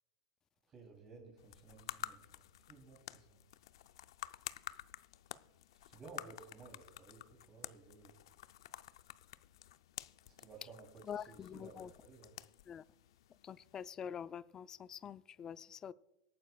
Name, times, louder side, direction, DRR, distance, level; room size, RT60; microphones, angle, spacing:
voice 1, 0.7-3.4 5.8-8.1 10.4-12.3, right 4 dB, 25° right, 3.1 m, -56 dB
sound 1, 1.4-13.9, left 13 dB, 80° left, 0.5 m, -51 dB
voice 2, 11.1-11.9 12.7-12.8 13.4-15.9, left 8 dB, 20° left, 0.4 m, -46 dB
25.0 x 9.5 x 2.3 m
supercardioid pair, 145°, 3 cm